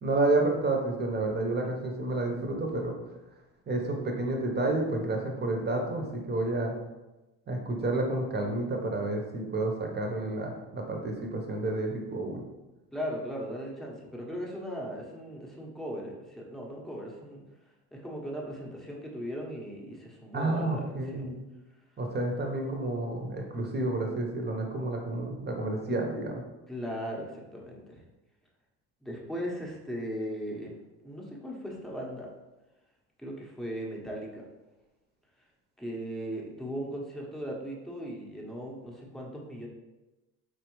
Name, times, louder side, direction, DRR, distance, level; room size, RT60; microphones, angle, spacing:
voice 1, 0.0-3.0 3.7-6.7 7.5-12.4 20.3-21.4 22.0-26.4, right 2 dB, 25° right, 2 dB, 1.0 m, -30 dB
voice 2, 12.9-17.4 17.9-21.3 26.7-28.0 29.0-30.7 31.0-32.3 33.2-34.4 35.8-39.7, equal, ahead, -3 dB, 1.0 m, -38 dB
4.4 x 3.4 x 3.1 m, 1.1 s
supercardioid pair, 90°, 37 cm